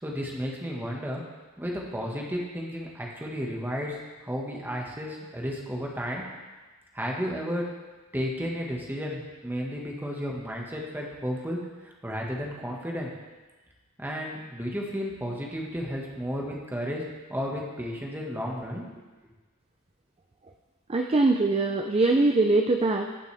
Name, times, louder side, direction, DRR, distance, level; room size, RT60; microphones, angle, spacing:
voice 1, 0.0-1.2 1.6-4.0 4.2-6.3 6.9-7.6 8.1-13.1 14.0-17.0 17.3-19.0, equal, 10° right, -2 dB, 1.6 m, -33 dB
voice 2, 20.9-23.1, right 2 dB, 25° right, 3 dB, 0.5 m, -22 dB
18.5 x 6.3 x 3.5 m, 1.3 s
head